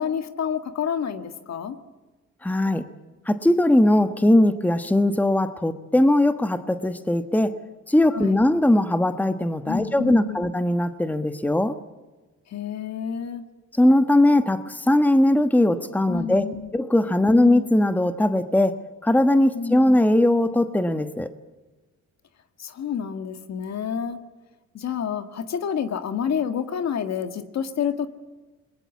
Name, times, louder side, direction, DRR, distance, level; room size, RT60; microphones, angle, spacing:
voice 1, 0.0-1.8 8.1-8.4 9.7-10.4 12.5-13.4 16.1-16.7 17.2-17.6 19.5-19.7 22.6-24.2 24.7-28.1, left 7 dB, 60° left, 8 dB, 1.8 m, -29 dB
voice 2, 2.4-2.9 3.3-7.5 7.9-11.8 13.8-16.5 16.7-18.8 19.0-21.3, left 1 dB, 5° left, 9 dB, 1.2 m, -20 dB
27.5 x 21.0 x 7.3 m, 1.2 s
cardioid pair, 90°, 30 cm